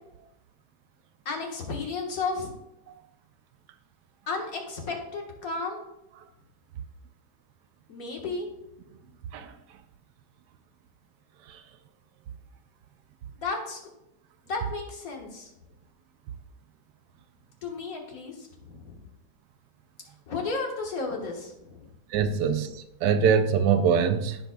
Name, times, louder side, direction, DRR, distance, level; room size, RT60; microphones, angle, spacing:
voice 1, 1.2-2.5 4.3-5.8 7.9-8.5 13.4-13.8 14.5-15.5 17.6-19.0 20.3-21.8, left 3 dB, 60° left, 1.7 m, -33 dB
voice 2, 22.1-24.4, right 6 dB, 85° right, 1.2 m, -23 dB
14.5 x 5.1 x 2.2 m
omnidirectional pair, 1.8 m